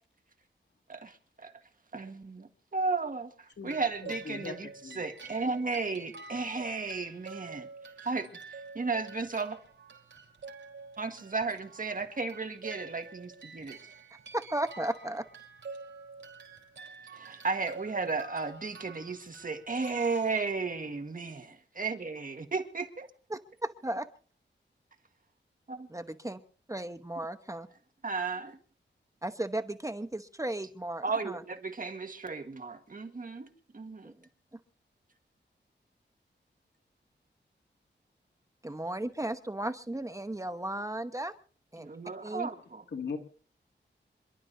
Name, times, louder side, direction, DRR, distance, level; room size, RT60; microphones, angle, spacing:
voice 1, 1.9-3.3 3.6-4.7 5.0-7.7 8.0-8.3 8.8-9.6 11.0-13.8 17.1-21.3 21.8-23.1 25.7-25.9 28.0-28.6 31.0-33.5 33.7-34.1 41.8-42.8, right 4 dB, 45° right, 6 dB, 1.8 m, -34 dB
voice 2, 3.6-4.5 4.8-5.3 42.9-43.2, left 5 dB, 65° left, 4 dB, 2.4 m, -40 dB
sound 1, 3.6-21.1, right 4 dB, 85° right, 3.9 m, -48 dB
voice 3, 14.3-15.2 23.3-24.1 25.9-26.4 26.7-27.7 29.2-31.4 34.0-34.1 38.6-41.3 41.7-41.9 42.2-42.5, right 1 dB, 15° right, 9 dB, 1.0 m, -35 dB
27.5 x 12.0 x 2.7 m, 0.43 s
wide cardioid pair, 95°, 19 cm